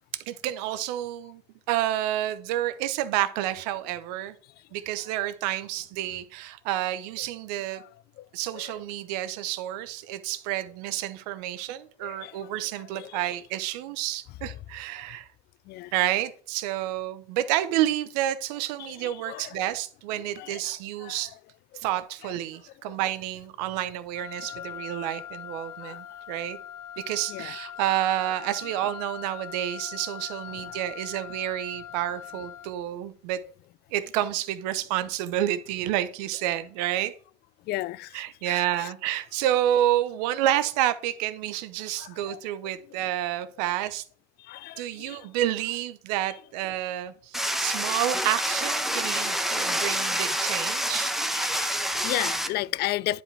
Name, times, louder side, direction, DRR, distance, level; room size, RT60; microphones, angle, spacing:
voice 1, 0.3-1.4 1.7-4.3 4.7-7.8 8.3-15.3 15.9-21.3 21.8-26.6 27.0-33.4 33.9-37.1 38.1-44.0 44.8-51.1, right 13 dB, 75° right, 0.9 m, -29 dB
voice 2, 12.0-12.5 12.9-13.1 15.7-15.9 18.8-19.5 20.4-20.6 21.0-21.2 24.6-24.7 25.8-26.0 27.3-27.5 37.7-38.1 38.5-38.6 42.0-42.4 44.5-45.2 47.6-47.7 51.3-53.2, left 16 dB, 50° left, 0.4 m, -34 dB
Wind instrument woodwind instrument, 24.1-32.8, left 10 dB, 80° left, 0.9 m, -41 dB
sound 1, 47.3-52.5, equal, ahead, 1.1 m, -27 dB
10.5 x 5.0 x 3.4 m
hypercardioid pair, 80°, 21 cm